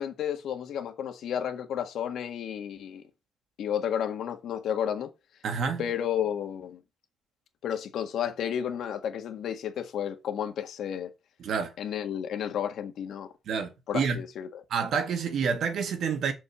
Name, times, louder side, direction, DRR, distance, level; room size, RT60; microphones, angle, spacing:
voice 1, 0.0-3.0 3.6-5.1 5.8-6.8 7.6-11.1 11.8-13.3 13.9-14.6, left 9 dB, 80° left, 1.7 m, -32 dB
voice 2, 5.4-5.8 11.4-11.7 13.5-14.2 14.7-16.3, right 6 dB, 70° right, 1.9 m, -28 dB
6.6 x 5.3 x 7.0 m
cardioid pair, 135°, 0 cm